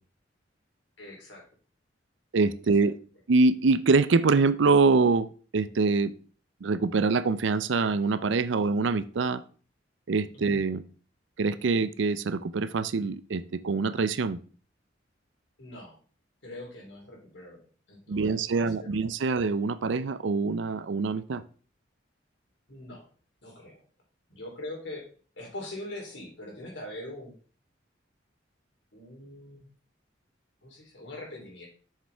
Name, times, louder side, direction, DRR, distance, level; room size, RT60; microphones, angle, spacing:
voice 1, 1.0-1.4 2.8-2.9 8.6-8.7 10.3-10.5 15.6-16.0 16.4-17.6 17.9-19.0 22.7-23.1 23.4-23.8 24.3-25.1 25.4-27.4 28.9-29.7 30.6-31.7, left 1 dB, 70° left, -1 dB, 3.4 m, -42 dB
voice 2, 2.3-3.0 3.3-5.3 5.5-6.1 6.6-9.4 10.1-10.8 11.4-14.4 18.1-21.4, right 4 dB, 75° right, 15 dB, 0.5 m, -24 dB
7.4 x 6.7 x 3.5 m, 0.40 s
head